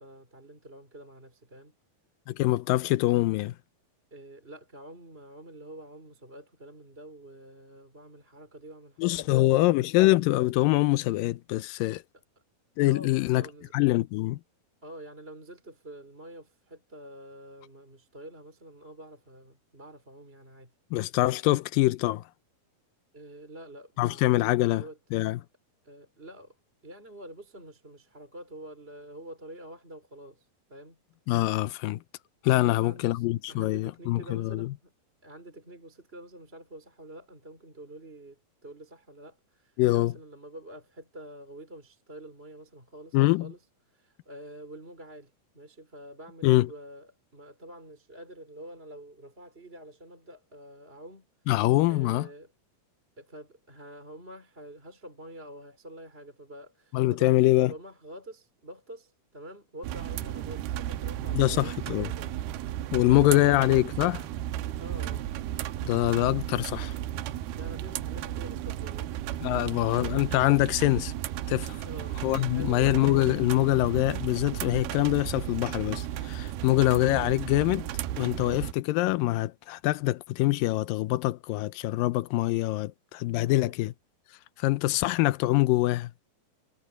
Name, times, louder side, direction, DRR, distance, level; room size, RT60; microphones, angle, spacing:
voice 1, 0.0-1.7 4.1-9.9 12.9-13.7 14.8-20.7 23.1-25.0 25.8-26.6 26.8-31.0 32.6-34.9 35.2-43.6 43.9-51.3 51.9-52.5 53.2-62.4 63.0-63.5 64.8-65.3 67.5-69.1 69.5-70.1 71.7-72.9 76.7-76.9 83.4-83.7, right 1 dB, 15° right, 4.1 m, -47 dB
voice 2, 2.3-3.6 9.0-12.0 12.8-13.5 13.7-14.4 20.9-22.2 24.0-24.8 25.1-25.4 31.3-32.0 32.4-34.7 39.8-40.1 43.1-43.5 46.4-46.7 51.5-52.3 56.9-57.7 61.3-62.1 62.9-64.3 65.8-67.0 69.4-71.1 71.5-71.8 72.2-77.9 78.2-83.9 84.6-86.1, left 18 dB, 80° left, 2.2 m, -24 dB
sound 1, 59.8-78.7, right 13 dB, 90° right, 2.9 m, -34 dB
omnidirectional pair, 4.3 m